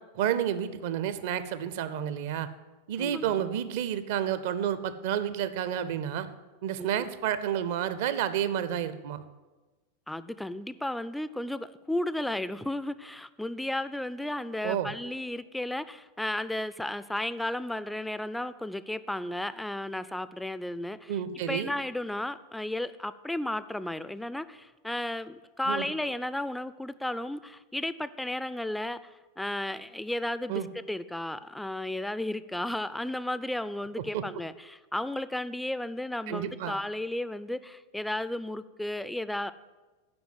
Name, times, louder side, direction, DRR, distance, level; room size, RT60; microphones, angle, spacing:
voice 1, 0.1-2.5 2.9-6.3 6.6-9.2 14.6-14.9 21.1-21.7 25.7-25.9 30.5-30.7 34.1-34.2 36.3-36.8, right 10 dB, 50° right, 13 dB, 0.5 m, -30 dB
voice 2, 3.0-3.4 6.8-7.1 10.1-21.2 21.5-39.5, left 1 dB, 5° left, 14 dB, 0.3 m, -34 dB
7.8 x 5.1 x 7.4 m, 1.2 s
figure-of-eight pair, 90°, 0 cm